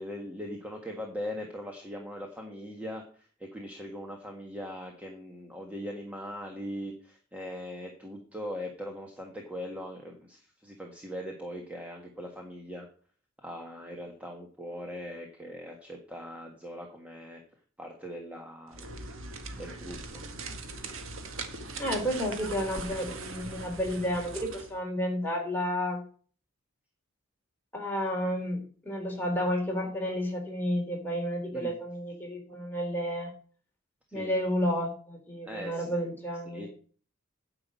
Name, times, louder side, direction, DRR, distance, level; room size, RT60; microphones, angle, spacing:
voice 1, 0.0-12.9 13.4-17.4 17.8-18.9 19.6-20.2 31.5-31.7 34.1-34.3 35.4-35.9 36.4-36.7, equal, 5° right, 1 dB, 1.5 m, -40 dB
sound 1, 18.7-24.7, right 3 dB, 70° right, 1.8 m, -40 dB
voice 2, 21.8-26.0 27.7-33.3 34.1-36.7, equal, 10° left, -1 dB, 3.7 m, -31 dB
9.8 x 5.9 x 8.3 m, 0.43 s
head